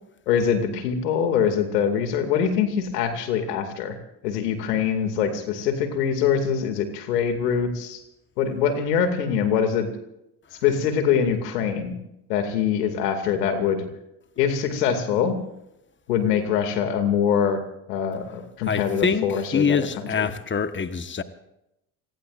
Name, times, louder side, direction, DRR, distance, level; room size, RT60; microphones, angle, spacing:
voice 1, 0.3-4.0 4.2-8.0 8.4-9.9 10.6-12.0 12.3-13.8 14.4-15.3 16.1-17.6 17.9-20.3, left 7 dB, 90° left, 2.6 m, -23 dB
voice 2, 18.7-19.3 19.5-21.2, left 6 dB, 25° left, 1.4 m, -24 dB
28.0 x 20.0 x 2.6 m
hypercardioid pair, 65°, 46 cm